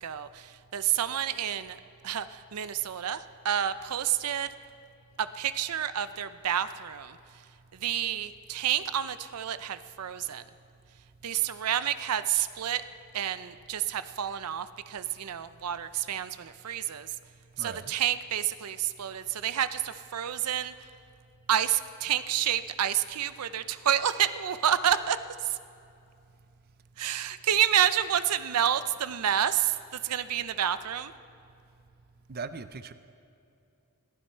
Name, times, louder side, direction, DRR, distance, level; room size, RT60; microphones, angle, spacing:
voice 1, 0.0-4.5 5.2-7.2 7.8-10.4 11.2-12.8 13.1-17.1 17.6-20.7 21.5-25.2 25.5-25.6 27.0-29.8 30.0-31.1, right 10 dB, 85° right, 13 dB, 0.5 m, -29 dB
voice 2, 17.6-17.9 32.3-32.9, right 4 dB, 45° right, 12 dB, 0.5 m, -39 dB
21.0 x 15.0 x 4.4 m, 2.6 s
head